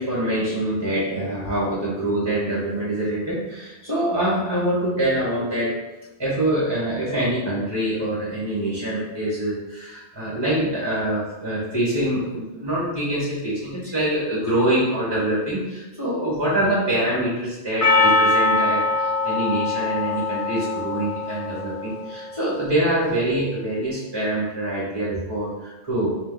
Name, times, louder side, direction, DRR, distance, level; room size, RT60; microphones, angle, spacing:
voice 1, 0.0-5.8 6.2-26.1, right 1 dB, 25° right, -7 dB, 0.9 m, -25 dB
Percussion, 17.8-22.1, left 3 dB, 55° left, 0.3 m, -22 dB
3.4 x 2.9 x 3.7 m, 1.0 s
omnidirectional pair, 1.1 m